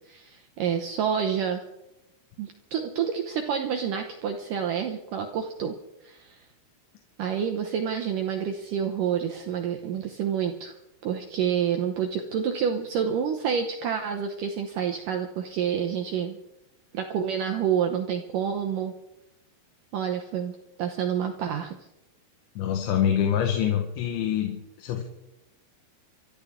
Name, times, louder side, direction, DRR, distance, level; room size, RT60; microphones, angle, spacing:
voice 1, 0.1-1.6 2.4-5.7 6.0-6.5 7.2-10.8 11.0-16.4 16.9-18.9 19.9-21.8, right 8 dB, 75° right, 4 dB, 1.9 m, -28 dB
voice 2, 22.6-25.0, left 9 dB, 90° left, 3 dB, 3.7 m, -25 dB
25.0 x 13.5 x 3.7 m, 0.90 s
omnidirectional pair, 5.1 m